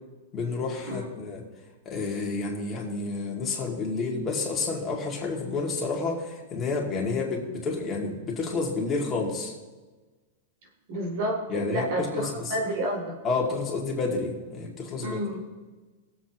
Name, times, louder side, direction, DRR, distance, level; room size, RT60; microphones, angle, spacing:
voice 1, 0.3-1.4 1.9-9.5 11.5-12.5 13.2-15.2, left 3 dB, 20° left, -2 dB, 2.4 m, -30 dB
voice 2, 10.9-13.2 15.0-15.4, right 1 dB, 55° right, 0 dB, 2.8 m, -30 dB
20.0 x 7.9 x 3.1 m, 1.3 s
supercardioid pair, 145°, 0 cm